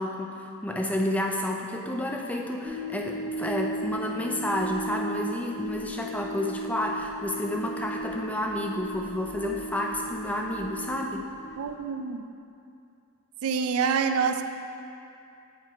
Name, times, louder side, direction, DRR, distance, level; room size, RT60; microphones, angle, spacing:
voice 1, 0.0-11.3, left 1 dB, 5° left, 1 dB, 0.4 m, -30 dB
sound 1, 2.6-11.8, right 1 dB, 35° right, 0.8 m, -36 dB
voice 2, 11.6-12.2 13.4-14.4, right 6 dB, 80° right, 8 dB, 0.4 m, -26 dB
8.0 x 4.3 x 4.7 m, 2.6 s
head